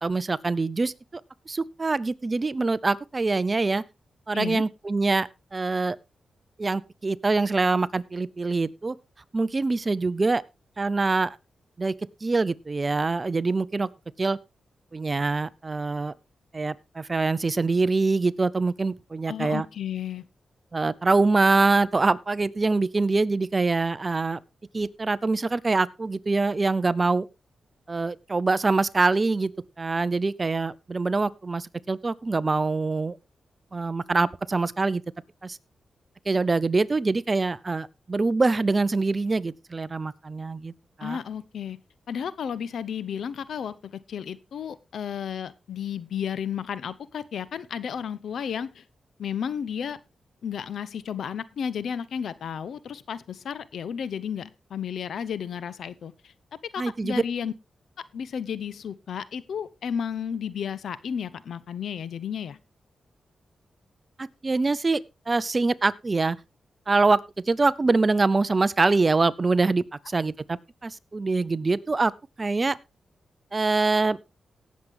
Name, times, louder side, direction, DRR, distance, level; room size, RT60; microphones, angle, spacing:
voice 1, 0.0-1.2 1.5-3.8 4.3-6.0 6.6-9.0 9.3-10.4 10.8-11.4 11.8-13.9 14.2-14.4 14.9-16.1 16.5-19.7 20.7-24.4 24.7-27.3 27.9-29.5 29.8-33.2 33.7-35.0 35.4-35.6 36.3-40.7 41.0-41.2 56.8-57.2 64.2-65.0 65.3-66.4 66.9-67.2 67.5-72.1 72.4-72.8 73.5-74.2, right 3 dB, 35° right, 19 dB, 0.6 m, -24 dB
voice 2, 19.3-20.3 41.0-41.8 42.1-48.8 49.2-50.0 50.4-56.3 56.7-57.5 58.1-62.6, left 8 dB, 80° left, 18 dB, 0.7 m, -33 dB
18.0 x 7.3 x 3.5 m, 0.25 s
cardioid pair, 65°, 0 cm